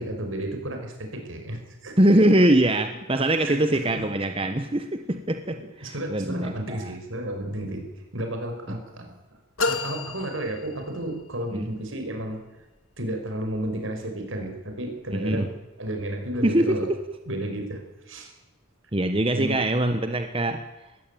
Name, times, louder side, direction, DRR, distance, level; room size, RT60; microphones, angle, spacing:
voice 1, 0.0-1.9 3.3-4.0 5.8-7.9 8.1-9.1 9.7-12.4 13.0-15.5 15.8-16.9 17.3-17.8 18.1-18.3 19.3-19.6, right 1 dB, 75° right, 4 dB, 5.5 m, -32 dB
voice 2, 2.0-6.9 11.6-11.7 15.1-15.5 16.4-17.0 18.9-20.6, right 1 dB, 25° right, 6 dB, 1.1 m, -23 dB
sound 1, 9.6-11.3, left 3 dB, 85° left, 2.2 m, -30 dB
21.0 x 16.0 x 9.2 m, 1.0 s
head